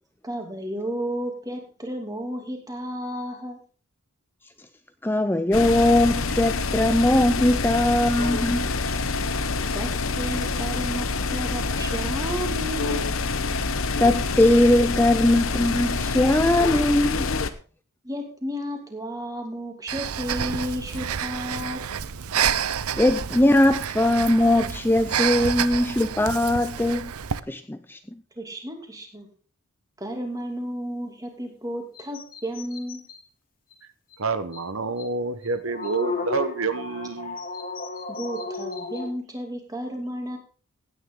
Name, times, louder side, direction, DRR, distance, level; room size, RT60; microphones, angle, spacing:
voice 1, 0.2-3.6 8.6-8.7 9.7-13.1 18.0-21.8 28.4-29.3 30.0-33.0 38.1-40.4, equal, 15° right, 2.6 m, -33 dB
voice 2, 5.0-8.7 14.0-17.3 23.0-27.1 27.5-28.0, left 1 dB, 10° left, 0.5 m, -20 dB
sound 1, 5.5-17.5, left 4 dB, 70° left, 1.0 m, -26 dB
Breathing, 19.9-27.4, right 8 dB, 90° right, 0.6 m, -29 dB
sound 2, 31.9-33.2 33.7-33.8 34.1-34.2 34.5-34.6 35.0-35.1 35.4-39.1, left 4 dB, 40° left, 2.5 m, -34 dB
voice 3, 34.2-37.4, right 4 dB, 70° right, 1.0 m, -28 dB
16.5 x 9.6 x 3.8 m
head